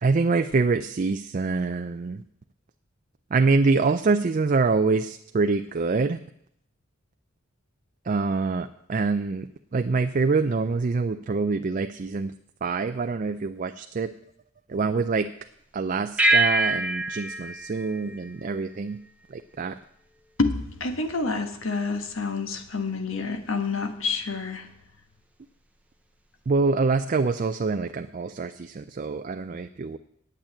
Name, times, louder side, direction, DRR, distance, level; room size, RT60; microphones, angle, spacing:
voice 1, 0.0-2.2 3.3-6.2 8.1-9.5 9.7-12.3 12.6-14.1 14.7-15.3 15.7-19.0 19.6-19.7 26.5-30.0, right 4 dB, 40° right, 8 dB, 0.4 m, -25 dB
sound 1, 16.2-18.9, right 2 dB, 5° right, 0.8 m, -25 dB
voice 2, 20.4-24.7, left 3 dB, 70° left, 7 dB, 1.4 m, -28 dB
8.9 x 8.7 x 8.9 m, 0.74 s
head